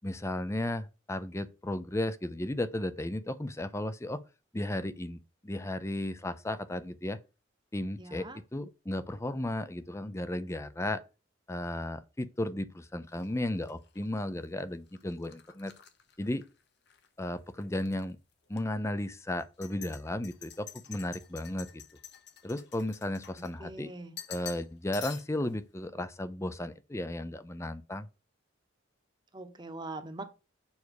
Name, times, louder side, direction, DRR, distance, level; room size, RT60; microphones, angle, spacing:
voice 1, 0.0-4.2 4.5-7.2 7.7-11.0 11.5-15.7 16.2-16.4 17.2-18.2 18.5-21.8 22.4-23.9 24.3-28.1, left 1 dB, 15° left, 0.5 m, -34 dB
voice 2, 8.0-8.4 23.4-24.1 29.3-30.2, right 2 dB, 25° right, 1.0 m, -42 dB
sound 1, 13.1-17.1 17.4-18.0 18.5-18.6 19.4-23.8 24.2-24.7 24.9-25.5, left 9 dB, 60° left, 1.1 m, -48 dB
7.1 x 4.7 x 6.4 m
head